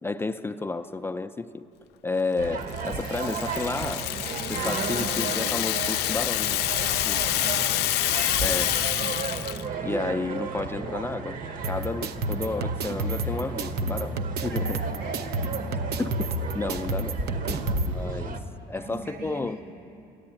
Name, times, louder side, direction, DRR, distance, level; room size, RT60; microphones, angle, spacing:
voice 1, 0.0-1.6 2.0-4.1 4.5-6.7 7.1-7.2 8.4-8.8 9.8-11.4 11.7-14.8 16.0-18.4 18.7-19.6, left 3 dB, 15° left, 10 dB, 0.4 m, -32 dB
sound 1, 2.4-18.4, right 4 dB, 55° right, 1.0 m, -34 dB
Rattle (instrument), 2.7-9.6, left 15 dB, 80° left, 0.4 m, -27 dB
voice 2, 7.0-7.8 8.2-8.6 9.0-9.4 14.4-15.6 17.5-18.0 18.7-19.6, right 2 dB, 90° right, 1 dB, 4.1 m, -41 dB
sound 2, 11.6-17.9, right 2 dB, 70° right, 0.7 m, -30 dB
14.0 x 10.5 x 8.7 m, 2.7 s
cardioid pair, 110°, 17 cm